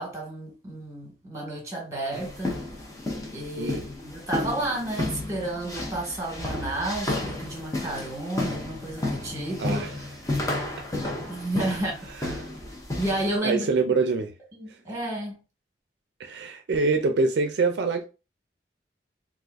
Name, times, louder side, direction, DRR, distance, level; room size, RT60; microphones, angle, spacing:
voice 1, 0.0-2.5 3.3-9.8 11.3-12.1 13.0-13.7 14.6-15.3, right 1 dB, 15° right, 1.3 m, -31 dB
sound 1, 2.1-13.4, left 2 dB, 20° left, 0.7 m, -32 dB
voice 2, 3.6-3.9 9.6-10.0 12.1-12.5 13.4-14.3 14.7-14.8 16.2-18.0, right 4 dB, 75° right, 0.4 m, -25 dB
3.9 x 2.5 x 2.4 m
head